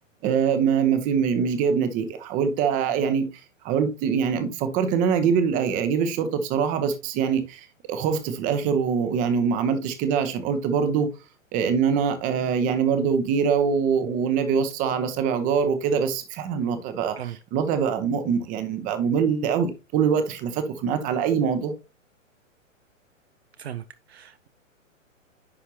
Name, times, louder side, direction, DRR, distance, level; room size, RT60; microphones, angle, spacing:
voice 1, 0.2-3.3 3.6-11.1 11.5-21.7, right 6 dB, 20° right, 0.9 m, -24 dB
voice 2, 24.1-24.5, right 10 dB, 50° right, 0.7 m, -36 dB
9.8 x 5.6 x 2.8 m
figure-of-eight pair, 115°, 39 cm